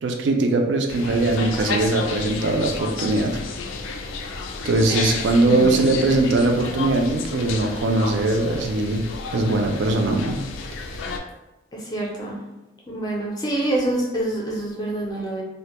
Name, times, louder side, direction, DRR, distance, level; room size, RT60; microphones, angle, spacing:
voice 1, 0.0-3.4 4.6-9.0 9.3-10.4, right 2 dB, 70° right, 3 dB, 0.3 m, -21 dB
sound 1, 0.9-11.2, left 4 dB, 85° left, 0.3 m, -31 dB
voice 2, 5.4-6.0 11.7-12.4 12.9-15.4, right 1 dB, 20° left, -3 dB, 0.4 m, -26 dB
2.1 x 2.0 x 2.8 m, 1.1 s
head